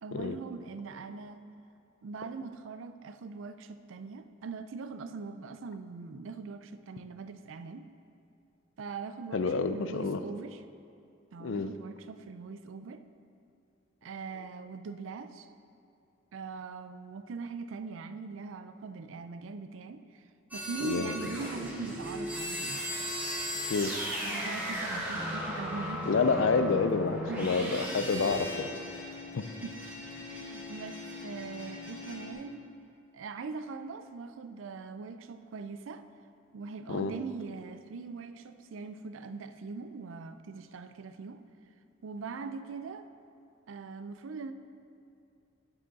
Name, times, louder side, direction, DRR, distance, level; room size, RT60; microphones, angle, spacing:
voice 1, 0.0-1.4 2.0-7.9 8.8-10.6 11.3-13.0 14.0-15.5 16.3-20.3 20.5-22.9 24.2-26.1 27.3-27.5 29.6-30.0 30.3-32.6 33.1-36.0 36.5-41.4 42.0-43.1 43.7-44.5, right 4 dB, 80° right, 10 dB, 0.4 m, -41 dB
voice 2, 9.3-10.2 11.4-11.7 20.8-21.1 23.7-23.9 26.1-28.7 29.3-29.4 36.9-37.1, left 4 dB, 75° left, 10 dB, 0.4 m, -28 dB
sound 1, 20.5-32.3, equal, 10° right, 1.6 m, -37 dB
8.6 x 6.9 x 4.0 m, 2.5 s
head